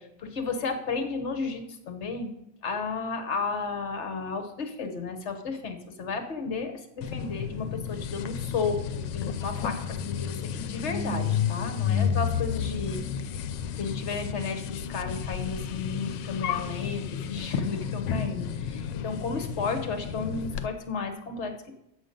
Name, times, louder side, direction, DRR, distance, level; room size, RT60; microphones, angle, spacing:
voice 1, 0.0-2.3 2.6-13.0 13.3-13.5 13.8-21.7, left 4 dB, 45° left, 6 dB, 1.0 m, -33 dB
sound 1, 7.0-20.7, left 7 dB, 80° left, 1.2 m, -31 dB
8.1 x 6.6 x 5.2 m, 0.82 s
omnidirectional pair, 2.0 m